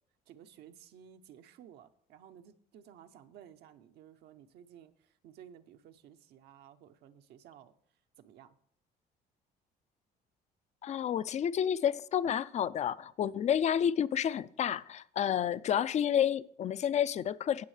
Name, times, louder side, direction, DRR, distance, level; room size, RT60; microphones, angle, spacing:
voice 1, 0.3-7.7 8.2-8.6, right 9 dB, 75° right, 0.8 m, -55 dB
voice 2, 10.8-17.6, left 9 dB, 40° left, 0.4 m, -30 dB
18.0 x 6.3 x 3.3 m
cardioid pair, 110°, 17 cm